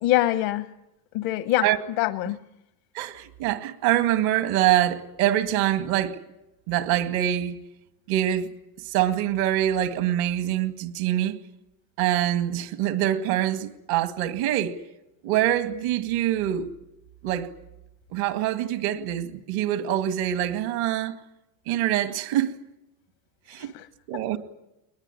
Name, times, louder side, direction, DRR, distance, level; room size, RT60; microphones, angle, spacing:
voice 1, 0.0-0.7 1.1-1.7 2.0-2.4 23.6-23.9 24.1-24.2, left 15 dB, 70° left, 1.1 m, -24 dB
voice 2, 2.9-6.2 6.7-7.6 8.1-8.5 8.8-11.4 12.0-14.8 15.2-16.7 17.2-17.5 18.1-21.2 21.7-22.5 23.5-23.7 24.1-24.4, right 12 dB, 75° right, 2.2 m, -24 dB
21.5 x 21.0 x 9.9 m
supercardioid pair, 85°, 48 cm